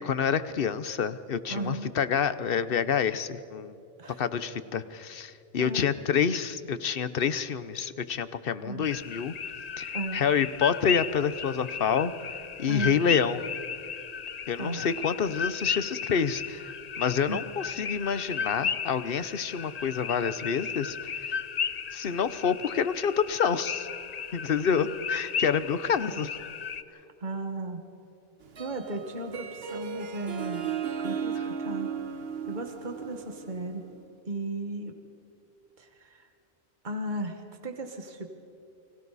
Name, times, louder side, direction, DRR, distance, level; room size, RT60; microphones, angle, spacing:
voice 1, 0.0-3.8 4.2-9.3 9.8-12.1 12.6-13.4 14.5-21.3 21.9-23.9 24.3-26.3, left 7 dB, 65° left, 14 dB, 1.1 m, -28 dB
voice 2, 1.5-1.9 4.0-4.2 5.6-5.9 8.6-8.9 9.9-10.2 12.7-13.0 14.6-14.8 17.3-17.4 26.1-26.2 27.2-27.8 28.6-30.7 31.0-31.9 32.5-33.9 34.3-34.9 35.8-36.3 36.8-38.3, right 1 dB, 50° right, 4 dB, 1.8 m, -35 dB
sound 1, 8.8-26.8, left 6 dB, 45° left, 0.7 m, -35 dB
Harp, 28.4-34.0, right 7 dB, 70° right, 1.4 m, -35 dB
29.5 x 24.5 x 4.2 m, 2.7 s
omnidirectional pair, 1.1 m